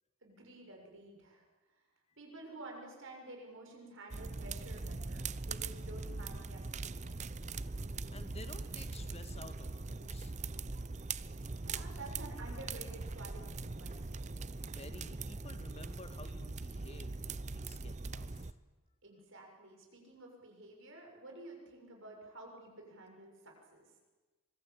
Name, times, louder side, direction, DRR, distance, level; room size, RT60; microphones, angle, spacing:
voice 1, 0.2-1.4 1.7-1.8 2.2-7.2 11.6-14.3 19.0-23.9, right 2 dB, 55° right, 1 dB, 6.9 m, -51 dB
sound 1, 4.1-18.5, right 3 dB, 30° right, 0.7 m, -41 dB
voice 2, 8.1-10.3 14.6-18.5, left 2 dB, 25° left, 9 dB, 1.9 m, -53 dB
24.5 x 22.5 x 8.9 m, 1.3 s
head